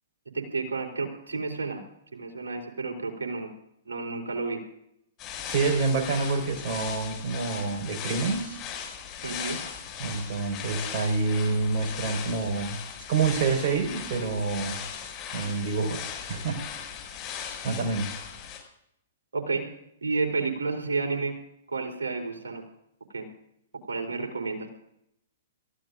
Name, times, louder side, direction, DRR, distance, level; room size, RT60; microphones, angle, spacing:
voice 1, 0.3-1.8 2.1-3.5 3.9-4.6 9.2-9.6 19.3-19.7 20.0-21.4 21.7-22.6 23.1-23.3 23.9-24.7, right 4 dB, 75° right, 1 dB, 3.7 m, -31 dB
sound 1, 5.2-18.6, left 8 dB, 30° left, 6.2 m, -38 dB
voice 2, 5.5-8.6 10.0-12.8 13.1-14.8 15.3-16.0 16.3-16.6 17.6-18.1, right 4 dB, 45° right, 2 dB, 4.8 m, -27 dB
29.5 x 15.5 x 2.6 m, 0.78 s
figure-of-eight pair, 115°, 0 cm